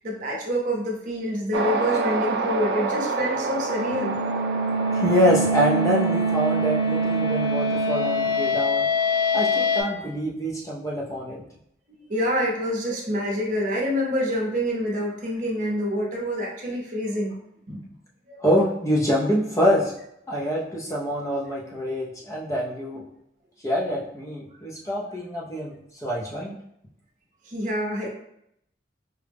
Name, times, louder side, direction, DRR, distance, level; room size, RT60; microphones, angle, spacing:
voice 1, 0.0-4.1 11.9-17.4 17.7-17.9 18.3-18.4 27.4-28.1, equal, 40° right, -1 dB, 0.7 m, -27 dB
sound 1, 1.5-10.1, right 3 dB, 65° right, 0.3 m, -30 dB
sound 2, 3.5-9.8, equal, 75° left, 1.5 m, -24 dB
voice 2, 4.9-8.9 9.3-11.4 18.4-19.9 20.3-23.0 23.6-26.5, equal, 15° left, -4 dB, 0.5 m, -25 dB
4.7 x 2.1 x 3.4 m, 0.77 s
head